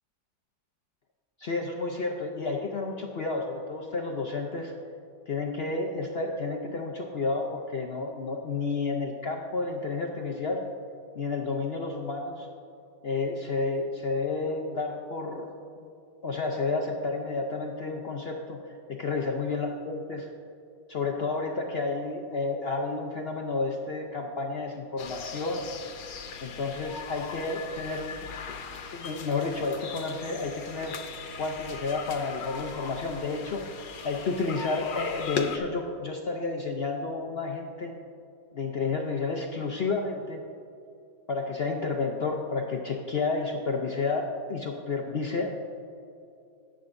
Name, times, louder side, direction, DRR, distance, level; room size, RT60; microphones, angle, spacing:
voice 1, 1.4-4.7 5.3-10.6 11.1-12.5 13.0-15.5 15.8-15.9 16.2-18.6 18.9-20.3 20.9-25.7 26.4-28.2 28.9-31.0 31.4-37.9 38.5-40.4 41.3-45.5, left 3 dB, 70° left, 1 dB, 0.5 m, -31 dB
sound 1, 25.0-35.6, left 6 dB, 85° left, 1.4 m, -39 dB
17.5 x 7.7 x 2.6 m, 2.7 s
omnidirectional pair, 1.9 m